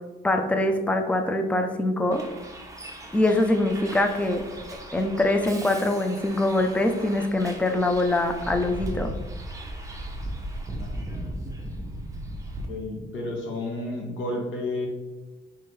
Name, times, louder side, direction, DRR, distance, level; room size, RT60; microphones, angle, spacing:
voice 1, 0.2-2.2 3.1-4.4 4.9-9.1, left 1 dB, 5° left, 5 dB, 0.4 m, -23 dB
Bus, 2.1-12.6, right 1 dB, 15° right, 0.9 m, -37 dB
voice 2, 12.7-14.9, left 2 dB, 75° left, 0 dB, 1.1 m, -31 dB
4.4 x 3.6 x 3.2 m, 1.2 s
cardioid pair, 90°, 20 cm